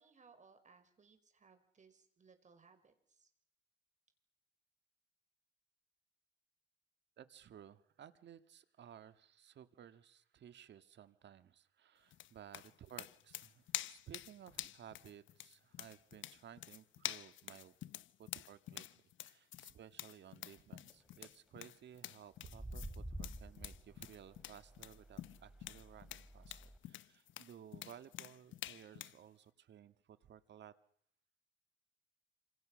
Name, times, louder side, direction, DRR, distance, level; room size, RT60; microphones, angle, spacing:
voice 1, 0.0-3.3, right 5 dB, 40° right, 9 dB, 5.3 m, -65 dB
voice 2, 7.2-17.7 18.2-30.7, right 9 dB, 65° right, 11 dB, 1.8 m, -57 dB
sound 1, 12.1-29.2, left 13 dB, 75° left, 1.0 m, -48 dB
sound 2, 20.9-21.3 22.4-26.8, right 1 dB, 5° right, 3.1 m, -50 dB
27.5 x 26.0 x 6.4 m, 0.68 s
cardioid pair, 90°, 20 cm